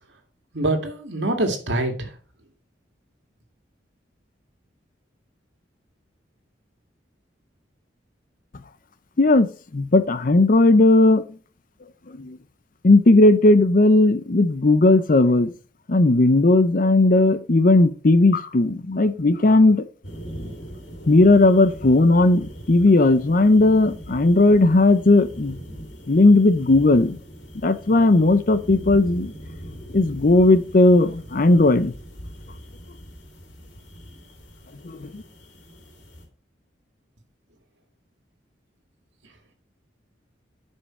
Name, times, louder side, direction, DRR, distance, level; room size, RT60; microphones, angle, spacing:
voice 1, 0.5-2.1, right 2 dB, 75° right, 2.1 m, -24 dB
voice 2, 9.2-11.2 12.2-12.4 12.8-15.5 15.9-19.9 21.1-25.6 26.1-27.2 27.6-29.3 29.9-31.9 34.8-35.2, left 2 dB, 50° left, 0.6 m, -16 dB
sound 1, 20.0-36.3, equal, 75° left, 2.9 m, -40 dB
10.0 x 5.6 x 4.4 m
head